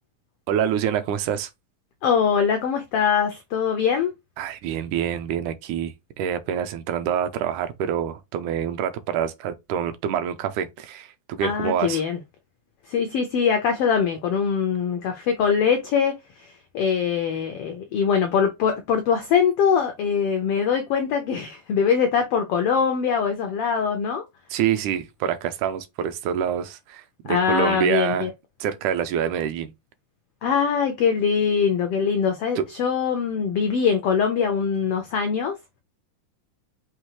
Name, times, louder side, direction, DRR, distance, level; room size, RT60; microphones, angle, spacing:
voice 1, 0.5-1.5 4.4-12.0 24.5-28.3 28.6-29.7 32.6-32.7, right 9 dB, 80° right, 2.0 m, -26 dB
voice 2, 2.0-4.1 11.4-12.2 12.9-24.2 27.2-28.3 30.4-35.5, left 6 dB, 85° left, 1.3 m, -22 dB
6.2 x 2.7 x 2.9 m
omnidirectional pair, 3.5 m